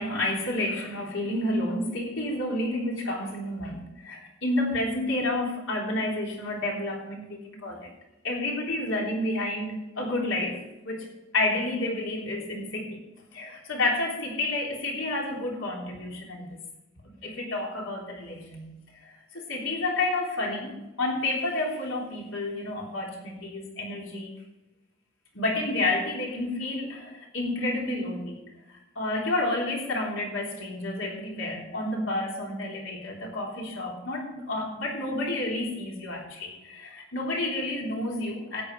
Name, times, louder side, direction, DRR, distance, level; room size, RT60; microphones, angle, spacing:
voice 1, 0.0-7.9 8.2-11.1 11.3-13.0 13.3-16.5 17.0-18.7 19.0-24.3 25.3-28.4 29.0-38.6, left 2 dB, 75° left, -1 dB, 3.6 m, -30 dB
13.0 x 9.8 x 4.8 m, 0.96 s
head